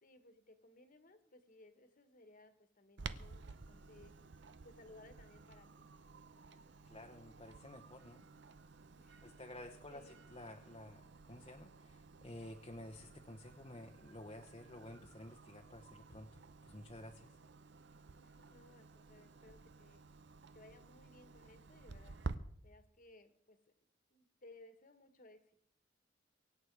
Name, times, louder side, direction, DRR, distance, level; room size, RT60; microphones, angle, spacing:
voice 1, 0.0-4.1 4.6-5.9 9.0-9.4 9.9-10.2 18.2-20.0 20.5-22.2 22.6-23.8 24.1-25.6, left 2 dB, 45° left, 8 dB, 1.6 m, -61 dB
Clock, 3.0-22.4, right 4 dB, 65° right, 0.7 m, -52 dB
voice 2, 6.8-8.3 9.2-17.3, left 1 dB, 30° left, 1 dB, 1.0 m, -52 dB
24.0 x 8.6 x 4.8 m, 0.69 s
head